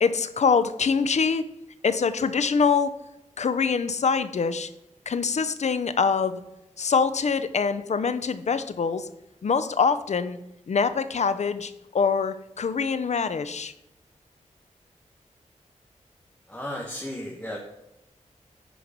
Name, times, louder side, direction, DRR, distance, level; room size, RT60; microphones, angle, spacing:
voice 1, 0.0-1.4 1.8-2.9 3.4-4.7 5.1-6.4 6.8-9.1 9.4-10.4 10.7-13.7, left 5 dB, 60° left, 12 dB, 0.7 m, -24 dB
voice 2, 16.5-17.6, left 1 dB, 10° left, -2 dB, 1.7 m, -34 dB
10.0 x 4.7 x 5.3 m, 0.90 s
wide cardioid pair, 75°, 13 cm